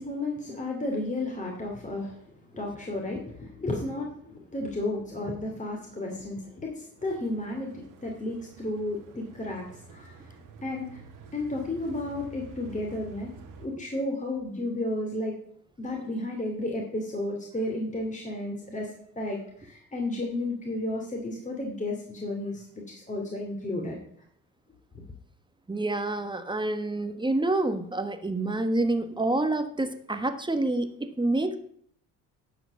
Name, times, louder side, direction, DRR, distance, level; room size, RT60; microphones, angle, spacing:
voice 1, 0.0-2.2 2.5-10.4 10.6-11.0 11.3-13.3 13.6-15.3 15.8-24.0, left 2 dB, 20° left, 0 dB, 2.7 m, -33 dB
sound 1, 7.0-13.7, right 4 dB, 65° right, 2.0 m, -49 dB
voice 2, 25.7-31.6, right 2 dB, 15° right, 9 dB, 1.2 m, -27 dB
12.0 x 5.0 x 7.1 m, 0.64 s
supercardioid pair, 75°, 35 cm